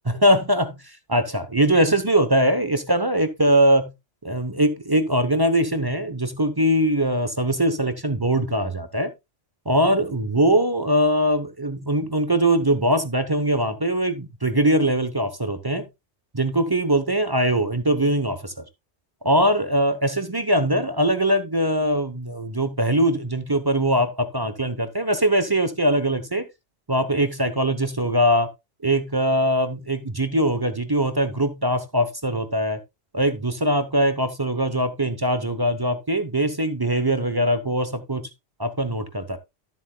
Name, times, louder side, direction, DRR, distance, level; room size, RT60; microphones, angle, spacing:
voice 1, 0.1-3.9 4.2-9.1 9.7-15.9 16.3-18.6 19.2-26.4 26.9-28.5 28.8-32.8 33.1-38.2 38.6-39.4, right 1 dB, 20° right, 0.7 m, -22 dB
13.0 x 7.6 x 2.2 m
omnidirectional pair, 1.2 m